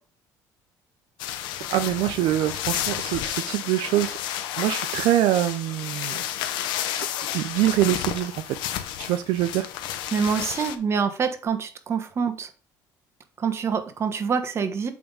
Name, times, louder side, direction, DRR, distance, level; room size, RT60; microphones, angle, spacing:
sound 1, 1.2-10.8, left 11 dB, 80° left, 0.9 m, -31 dB
voice 1, 1.7-4.2 4.6-6.2 6.9-7.1 7.3-8.6 9.0-9.7, right 14 dB, 80° right, 10 dB, 0.5 m, -24 dB
voice 2, 10.1-12.5 13.4-14.9, right 6 dB, 35° right, 7 dB, 1.3 m, -26 dB
8.4 x 3.6 x 5.5 m, 0.39 s
cardioid pair, 125°, 8 cm